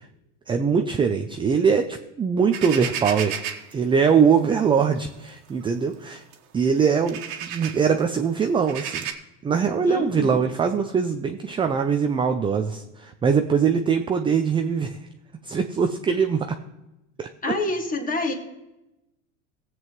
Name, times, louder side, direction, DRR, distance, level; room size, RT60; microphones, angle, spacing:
voice 1, 0.5-3.5 3.7-6.2 6.5-9.1 9.4-15.0 15.4-16.6 17.2-17.3, right 6 dB, 15° right, 6 dB, 0.4 m, -22 dB
sound 1, 2.5-3.7 4.8-5.0 5.5-5.6 6.3-6.4 6.9-7.8 8.5-9.1, right 9 dB, 60° right, 1.5 m, -32 dB
voice 2, 9.9-10.4 17.4-18.3, left 2 dB, 20° left, 3 dB, 1.8 m, -27 dB
17.5 x 7.8 x 3.0 m, 0.94 s
supercardioid pair, 120°, 40 cm